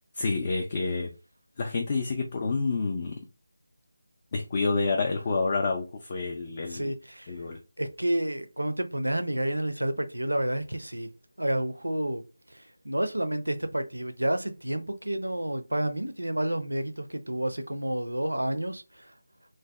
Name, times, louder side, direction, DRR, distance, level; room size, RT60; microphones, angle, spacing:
voice 1, 0.1-1.1 1.6-3.2 4.3-6.9 7.3-7.6, left 3 dB, 30° left, 0.3 m, -28 dB
voice 2, 6.7-7.3 7.8-11.1 11.4-12.2 12.5-19.1, right 1 dB, 80° right, 0.4 m, -30 dB
2.6 x 2.1 x 2.2 m
figure-of-eight pair, 160°, 0 cm